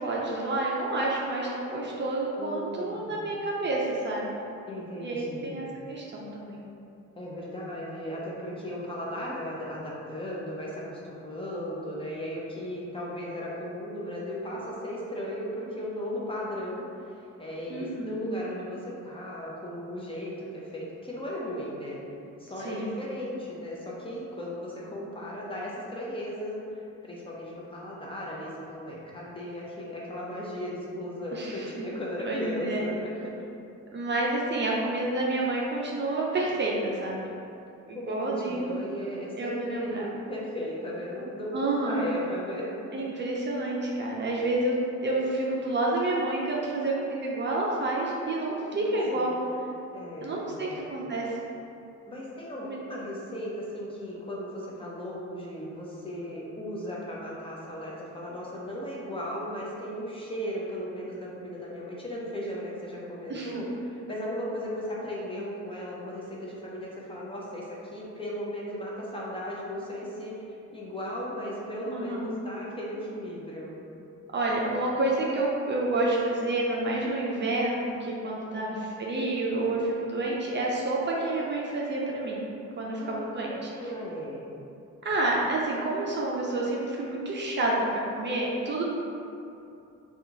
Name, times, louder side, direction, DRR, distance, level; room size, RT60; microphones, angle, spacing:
voice 1, 0.0-4.4 5.0-6.6 17.7-18.3 22.6-23.0 31.3-31.7 32.2-32.9 33.9-37.2 37.9-38.8 39.4-40.1 41.5-42.1 42.9-44.8 45.0-49.4 50.2-51.3 52.6-52.8 63.3-63.6 71.9-72.4 74.3-82.5 82.8-83.7 85.0-87.7 88.1-88.8, right 2 dB, 35° right, -4 dB, 0.5 m, -29 dB
voice 2, 2.4-3.4 4.7-5.6 7.2-22.0 22.4-33.1 37.9-42.7 48.7-49.3 49.9-50.9 52.1-63.7 64.1-70.4 70.7-73.7 78.4-78.8 82.8-84.4, left 1 dB, 20° left, -5 dB, 0.6 m, -36 dB
2.8 x 2.4 x 3.8 m, 2.7 s
cardioid pair, 90°, 30 cm